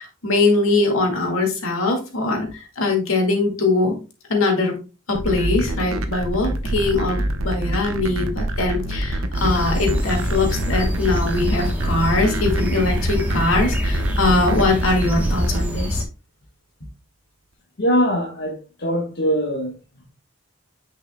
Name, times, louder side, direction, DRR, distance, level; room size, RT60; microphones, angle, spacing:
voice 1, 0.0-3.9 4.3-4.8 5.1-16.0, left 2 dB, 75° left, 2.0 m, -21 dB
sound 1, 5.2-15.6, right 1 dB, 80° right, 0.9 m, -26 dB
sound 2, 9.3-16.0, equal, 5° right, 1.0 m, -25 dB
voice 2, 17.8-19.7, equal, 50° left, 1.2 m, -22 dB
9.0 x 5.4 x 2.2 m
head